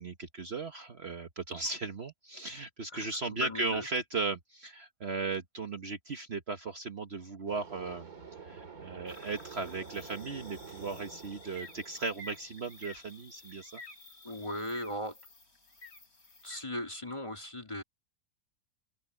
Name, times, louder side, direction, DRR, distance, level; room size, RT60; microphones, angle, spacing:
voice 1, 0.0-8.1 8.4-13.8, right 3 dB, 45° right, 1.4 m, -37 dB
voice 2, 2.9-3.8 14.2-15.2 16.4-17.8, left 1 dB, 20° left, 3.2 m, -37 dB
sound 1, 7.5-13.1, right 5 dB, 75° right, 3.1 m, -49 dB
sound 2, 9.1-16.6, left 1 dB, 75° left, 4.7 m, -52 dB
omnidirectional pair, 1.5 m